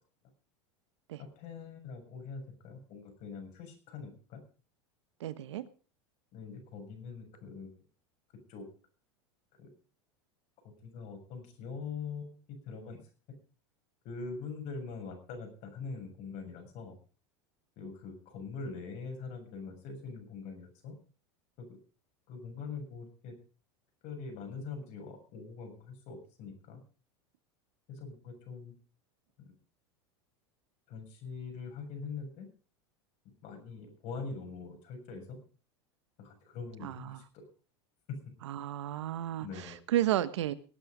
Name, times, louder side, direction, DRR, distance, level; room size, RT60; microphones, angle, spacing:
voice 1, 1.2-4.4 6.3-7.8 8.5-8.7 9.6-9.7 10.6-13.1 14.0-17.0 17.8-21.0 21.6-21.8 22.3-23.3 24.0-26.8 27.9-28.7 29.4-29.5 30.9-32.5 33.4-35.4 36.2-37.5 38.1-38.2 39.4-39.8, left 5 dB, 55° left, 4 dB, 6.9 m, -43 dB
voice 2, 5.2-5.6 36.8-37.2 38.4-40.5, right 13 dB, 80° right, 15 dB, 1.2 m, -32 dB
18.5 x 8.7 x 5.1 m, 0.39 s
hypercardioid pair, 105°, 15 cm